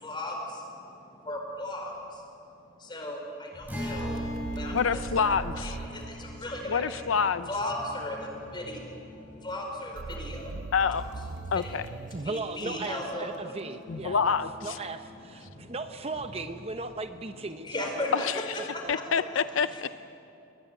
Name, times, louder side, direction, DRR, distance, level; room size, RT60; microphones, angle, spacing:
voice 1, 0.0-2.2 2.8-4.2 4.5-7.0 7.5-11.0 11.6-11.8 12.1-13.3 14.0-14.2 15.4-15.8 17.6-18.3 18.7-18.9 19.7-19.8, left 1 dB, 25° left, 1 dB, 5.0 m, -37 dB
sound 1, 1.5-2.8 3.4-17.5, left 1 dB, 45° right, 6.1 m, -50 dB
Acoustic guitar, 3.7-9.2, equal, 10° right, 6.7 m, -39 dB
sound 2, 4.0-7.0 10.0-13.4, right 3 dB, 65° right, 0.6 m, -40 dB
voice 2, 4.7-5.8 6.7-7.5 10.7-11.0 11.5-11.9 13.9-14.8 18.1-18.4 18.9-19.9, left 6 dB, 80° left, 13 dB, 0.5 m, -27 dB
voice 3, 12.1-14.4 14.6-18.0 18.8-19.3, right 3 dB, 30° right, 8 dB, 0.7 m, -37 dB
21.5 x 21.0 x 9.6 m, 2.7 s
head